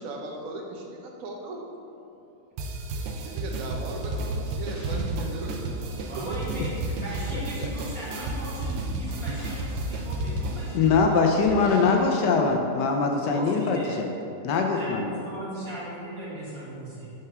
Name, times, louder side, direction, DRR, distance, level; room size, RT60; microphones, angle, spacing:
voice 1, 0.0-1.6 3.1-5.9 7.8-7.9, right 2 dB, 60° right, 0 dB, 0.9 m, -38 dB
sound 1, 2.6-10.8, right 2 dB, 85° right, 1.6 m, -32 dB
sound 2, 3.6-12.6, right 1 dB, 10° right, 1.4 m, -44 dB
voice 2, 6.0-12.1 13.3-14.1 14.7-17.1, right 1 dB, 45° right, -8 dB, 2.0 m, -38 dB
voice 3, 7.3-7.7 9.3-9.4 10.7-14.0 14.4-15.1, left 4 dB, 75° left, 2 dB, 1.0 m, -23 dB
5.8 x 4.7 x 5.9 m, 2.8 s
omnidirectional pair, 2.4 m